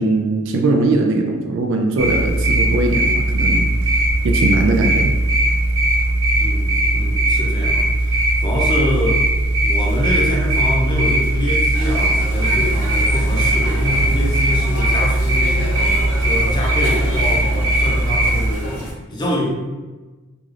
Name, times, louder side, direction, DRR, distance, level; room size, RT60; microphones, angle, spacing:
voice 1, 0.0-3.7 4.2-5.1, right 2 dB, 55° right, 2 dB, 0.3 m, -20 dB
sound 1, 2.0-18.5, right 1 dB, 85° right, 1.3 m, -18 dB
voice 2, 6.4-9.3 9.6-15.7 16.2-19.5, equal, 20° left, -2 dB, 0.5 m, -25 dB
sound 2, 11.7-18.9, left 1 dB, 80° left, 0.7 m, -28 dB
2.5 x 2.3 x 3.2 m, 1.2 s
head